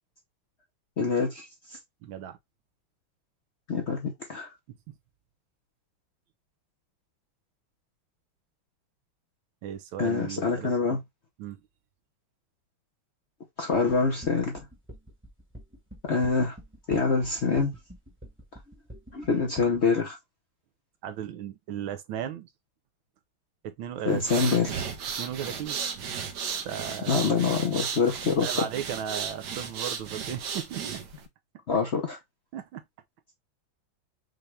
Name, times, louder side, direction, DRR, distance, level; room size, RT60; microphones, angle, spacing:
voice 1, 1.0-1.5 3.7-4.5 10.0-11.0 13.6-14.6 16.0-16.6 16.9-17.7 19.1-20.2 24.1-24.8 27.1-28.7 31.7-32.2, left 4 dB, 45° left, 0.9 m, -25 dB
voice 2, 2.0-2.4 4.7-4.8 9.6-11.0 11.4-11.6 21.0-22.5 23.6-24.8 25.2-25.8 26.6-27.2 28.4-31.0 32.5-32.8, right 9 dB, 75° right, 1.5 m, -36 dB
sound 1, 13.7-19.8, equal, 5° right, 1.1 m, -46 dB
sound 2, 24.1-31.2, right 6 dB, 60° right, 1.4 m, -35 dB
5.8 x 2.5 x 3.2 m
omnidirectional pair, 2.2 m